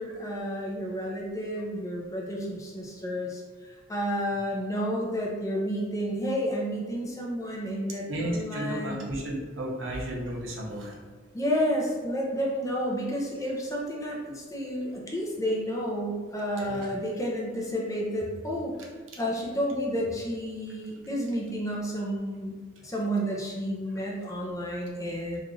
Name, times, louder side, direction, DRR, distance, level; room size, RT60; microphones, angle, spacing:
voice 1, 0.0-9.0 11.3-18.7 19.2-22.6 22.8-25.4, equal, 15° left, -3 dB, 0.5 m, -31 dB
voice 2, 8.1-10.9 16.6-16.8, right 1 dB, 75° right, -2 dB, 0.7 m, -33 dB
3.1 x 2.4 x 3.7 m, 1.4 s
head